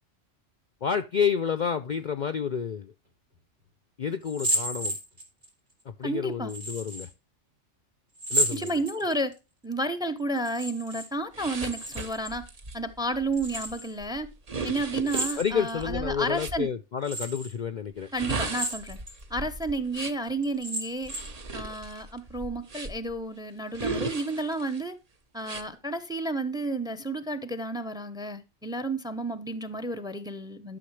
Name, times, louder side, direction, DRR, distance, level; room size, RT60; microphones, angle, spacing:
voice 1, 0.8-2.9 4.0-5.0 5.9-7.1 8.3-8.8 15.4-18.1, left 7 dB, 50° left, 0.6 m, -29 dB
sound 1, 4.2-5.5 6.5-7.1 8.2-9.3 10.4-11.1 11.4-12.3 13.3-13.9 15.0-15.8 16.4-16.5 17.0-17.5 18.4-19.2 19.6-19.7 20.4-21.4, right 1 dB, 70° right, 3.3 m, -32 dB
voice 2, 6.0-6.5 8.5-9.3 9.6-12.4 12.7-14.3 14.6-16.7 18.1-19.0 19.3-21.1 21.5-24.9 25.3-30.8, right 2 dB, 5° right, 0.7 m, -31 dB
sound 2, 11.3-16.6 18.0-20.3 21.0-23.1 23.7-24.8 25.4-25.6, right 3 dB, 35° right, 0.9 m, -36 dB
11.5 x 6.4 x 3.1 m
omnidirectional pair, 1.2 m